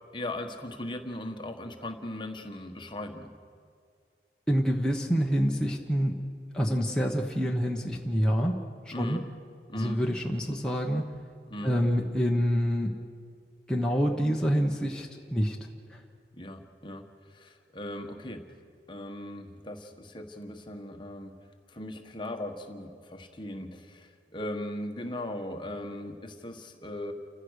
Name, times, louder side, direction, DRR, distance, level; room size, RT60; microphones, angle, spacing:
voice 1, 0.1-3.3 8.9-9.3 9.7-10.0 11.5-11.7 16.3-17.1 17.3-18.4 18.9-21.3 21.7-27.1, left 1 dB, 25° left, 5 dB, 1.3 m, -38 dB
voice 2, 4.5-6.2 6.5-8.6 8.9-9.2 9.7-11.0 11.6-12.9 13.7-15.6, equal, 5° left, -1 dB, 1.1 m, -27 dB
29.5 x 15.5 x 6.5 m, 2.1 s
head